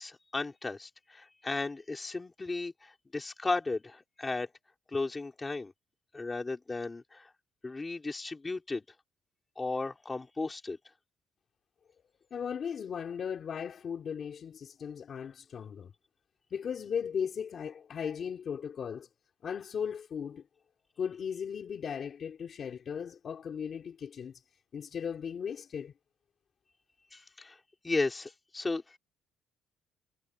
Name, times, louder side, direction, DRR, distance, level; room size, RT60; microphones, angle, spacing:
voice 1, 0.0-4.5 4.9-5.7 6.1-7.3 7.6-8.8 9.6-10.8 27.1-27.6 27.8-29.0, left 3 dB, 15° left, 3.6 m, -35 dB
voice 2, 12.3-15.9 16.5-19.1 19.4-20.4 21.0-24.4 24.7-25.9, left 7 dB, 35° left, 2.9 m, -37 dB
cardioid pair, 170°, 0 cm